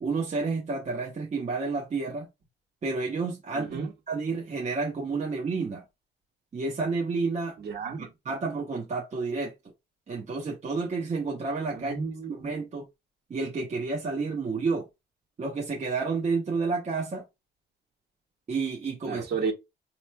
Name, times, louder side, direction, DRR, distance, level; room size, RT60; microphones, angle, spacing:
voice 1, 0.0-2.3 2.8-5.8 6.5-7.6 8.0-9.5 10.1-11.9 12.3-12.9 13.3-14.9 15.4-17.2 18.5-19.3, right 4 dB, 35° right, 0.8 m, -30 dB
voice 2, 3.5-3.9 7.6-8.1 11.7-12.5 19.1-19.5, right 5 dB, 55° right, 1.5 m, -32 dB
4.3 x 3.0 x 2.2 m
cardioid pair, 90°, 20 cm